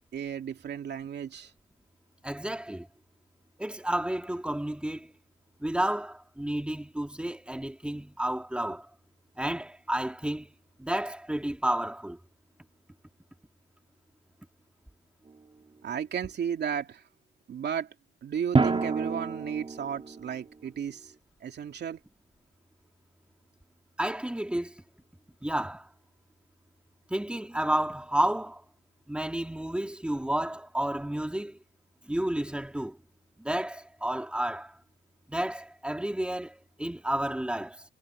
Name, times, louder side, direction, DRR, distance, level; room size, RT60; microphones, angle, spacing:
voice 1, 0.1-1.5 15.8-17.0 17.5-17.9 18.2-21.1 21.4-22.0, right 8 dB, 60° right, 2.8 m, -34 dB
voice 2, 2.2-2.9 3.6-5.1 5.6-8.9 9.4-10.5 10.8-12.2 24.0-24.7 25.4-25.9 27.1-28.6 29.1-31.6 32.1-33.0 33.4-34.7 35.3-37.8, right 1 dB, 5° right, 3.6 m, -31 dB
Drum, 15.3-15.4 18.5-20.3, right 4 dB, 30° right, 2.6 m, -28 dB
cardioid pair, 90°, 20 cm